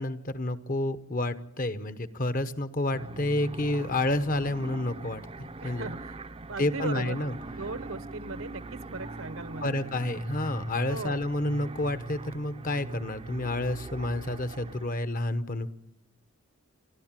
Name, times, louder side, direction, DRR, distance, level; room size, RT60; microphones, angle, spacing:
voice 1, 0.0-5.9 6.6-7.3 9.6-15.7, left 1 dB, 40° left, 12 dB, 1.1 m, -30 dB
sound 1, 2.9-14.9, right 2 dB, 25° right, 0.7 m, -41 dB
voice 2, 5.6-9.8 10.9-11.2, right 3 dB, 75° right, 13 dB, 1.2 m, -38 dB
29.0 x 12.5 x 7.5 m, 0.80 s
head